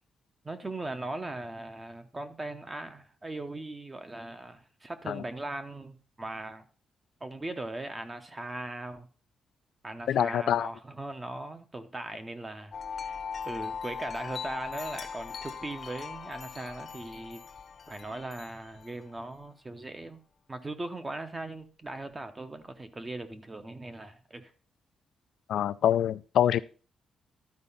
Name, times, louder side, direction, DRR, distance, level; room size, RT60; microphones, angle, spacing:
voice 1, 0.4-6.7 7.2-9.1 9.8-13.2 13.5-17.4 17.9-20.2 20.5-24.5, right 2 dB, 15° right, 0.9 m, -39 dB
voice 2, 10.1-10.7 25.5-26.6, left 10 dB, 75° left, 0.4 m, -25 dB
Wind chime, 12.7-19.2, left 6 dB, 35° left, 0.9 m, -40 dB
12.0 x 4.9 x 5.5 m
cardioid pair, 160°, 0 cm